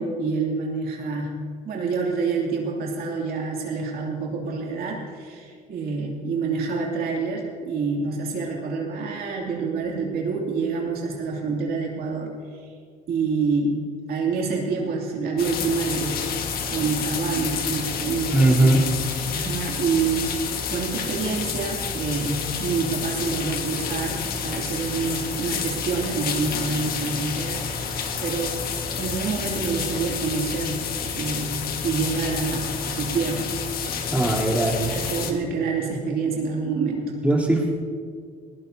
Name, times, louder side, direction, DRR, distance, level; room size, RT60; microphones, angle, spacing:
voice 1, 0.0-1.3 1.6-12.3 13.1-13.8 14.1-16.2 16.7-18.4 19.3-20.4 20.7-28.7 29.0-30.8 31.1-31.6 31.8-33.5 34.8-37.1, right 4 dB, 65° right, -2 dB, 2.6 m, -27 dB
sound 1, 15.4-35.3, left 6 dB, 60° left, 1.7 m, -29 dB
voice 2, 18.3-18.9 34.1-35.0 37.2-37.7, right 2 dB, 10° right, -3 dB, 3.5 m, -19 dB
20.5 x 18.0 x 2.8 m, 2.1 s
cardioid pair, 110°, 17 cm